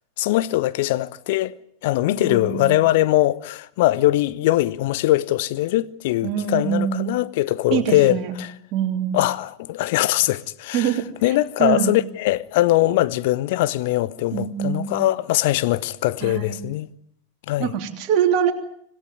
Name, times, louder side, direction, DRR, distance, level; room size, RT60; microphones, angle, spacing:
voice 1, 0.2-1.5 1.8-8.5 9.1-10.9 11.2-16.9 17.5-17.7, left 16 dB, 50° left, 1.0 m, -21 dB
voice 2, 2.1-2.8 6.2-7.1 7.7-8.4 8.7-9.2 10.7-11.0 11.6-11.9 14.3-15.0 16.2-16.6 17.6-18.5, right 9 dB, 40° right, 3.1 m, -24 dB
26.0 x 17.0 x 9.6 m
figure-of-eight pair, 90°, 0 cm